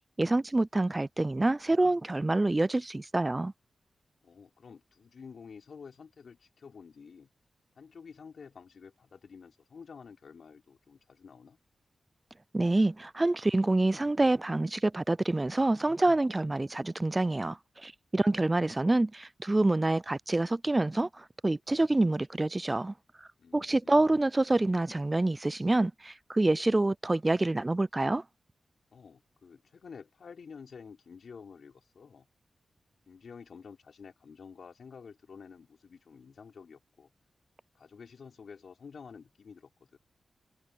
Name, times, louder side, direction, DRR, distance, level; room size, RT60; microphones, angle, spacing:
voice 1, 0.2-3.5 12.5-22.9 23.5-28.2, right 2 dB, 30° right, 0.4 m, -27 dB
voice 2, 4.2-7.3 7.8-11.6 23.4-24.0 28.9-32.3 33.1-37.1 37.7-40.0, left 6 dB, 75° left, 4.1 m, -50 dB
cardioid pair, 45°, 0 cm